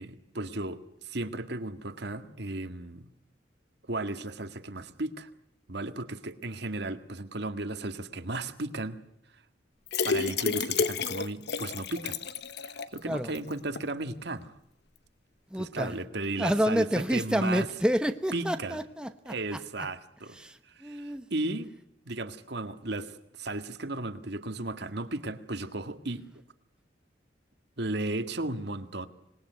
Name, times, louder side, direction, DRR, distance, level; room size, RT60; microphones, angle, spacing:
voice 1, 0.0-3.1 3.9-5.3 5.7-9.0 10.0-12.2 12.6-14.5 15.6-17.7 18.3-18.8 19.3-20.4 20.7-21.7 22.1-26.3 27.8-29.1, right 2 dB, 65° right, 9 dB, 1.8 m, -35 dB
sound 1, 9.9-13.0 13.3-13.4 13.8-13.9, left 5 dB, 65° left, 1.1 m, -30 dB
voice 2, 13.0-13.3 15.5-16.0 16.4-19.6 20.3-21.3, equal, 5° right, 8 dB, 0.9 m, -29 dB
26.5 x 20.5 x 9.3 m, 0.77 s
head